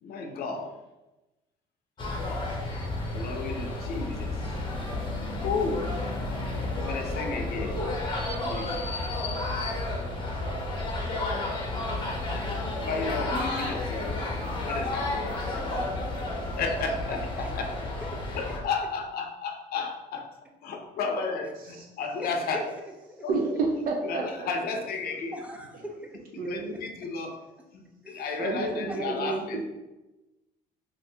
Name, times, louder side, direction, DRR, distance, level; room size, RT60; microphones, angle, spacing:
voice 1, 0.0-0.8 3.1-4.4 5.4-5.9 6.7-7.8 8.4-8.7 12.8-14.2 14.6-15.3 16.6-17.9 18.3-20.3 20.6-22.6 23.2-23.3 24.0-25.3 26.3-27.4 27.7-29.6, left 4 dB, 65° left, 4 dB, 0.6 m, -33 dB
sound 1, 2.0-18.6, left 2 dB, 30° left, 0.7 m, -31 dB
voice 2, 16.6-17.5 18.0-18.2 21.4-21.5 22.2-22.7 23.1-23.3 25.3-26.2 28.0-28.6 28.9-29.0, equal, 10° right, 2 dB, 0.4 m, -42 dB
voice 3, 23.3-24.5 26.4-26.8 28.4-29.6, right 3 dB, 60° right, 1 dB, 0.5 m, -29 dB
2.6 x 2.5 x 3.3 m, 1.0 s
cardioid pair, 110°, 17 cm